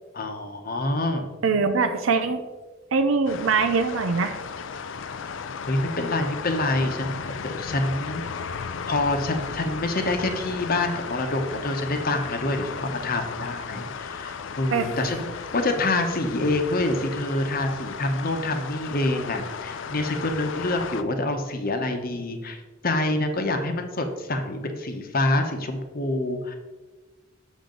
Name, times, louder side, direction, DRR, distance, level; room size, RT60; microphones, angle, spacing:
voice 1, 0.1-1.3 5.6-8.5 8.9-26.5, left 2 dB, 50° left, 5 dB, 1.0 m, -27 dB
voice 2, 1.4-2.4 2.9-4.4 14.7-14.9, right 4 dB, 85° right, 7 dB, 0.6 m, -22 dB
sound 1, 3.3-21.0, left 6 dB, 70° left, 0.4 m, -35 dB
7.3 x 6.5 x 3.8 m, 1.2 s
head